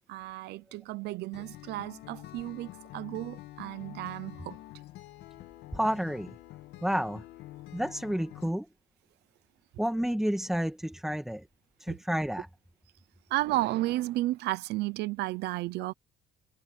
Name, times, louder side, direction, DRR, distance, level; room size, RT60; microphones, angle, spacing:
voice 1, 0.1-4.6 11.9-12.0 13.3-15.9, right 17 dB, 80° right, 0.8 m, -33 dB
Acoustic guitar, 1.3-8.5, left 15 dB, 85° left, 1.6 m, -47 dB
voice 2, 5.7-6.4 6.8-7.2 7.7-8.7 9.8-11.5 11.8-12.5, equal, ahead, 1.8 m, -30 dB
cardioid pair, 110°, 17 cm